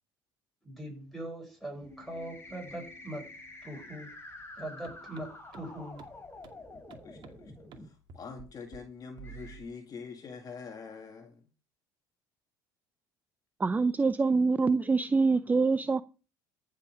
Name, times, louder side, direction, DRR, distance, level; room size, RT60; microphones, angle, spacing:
voice 1, 0.6-3.3 3.6-4.1 4.6-6.0, right 1 dB, ahead, 7.3 m, -41 dB
sound 1, 1.8-7.9 8.6-8.7 9.2-9.6, left 2 dB, 25° left, 4.4 m, -48 dB
sound 2, 4.8-4.9 5.2-5.3 5.5-5.6 6.0-6.1 6.4-6.5 6.9-7.3 7.7-7.8 8.1-8.5 8.7-8.8 9.2-9.7, right 8 dB, 55° right, 2.3 m, -48 dB
voice 2, 7.0-11.5, left 5 dB, 40° left, 2.0 m, -45 dB
voice 3, 13.6-16.0, right 4 dB, 15° right, 0.6 m, -25 dB
14.5 x 5.8 x 6.2 m
supercardioid pair, 100°, 10 cm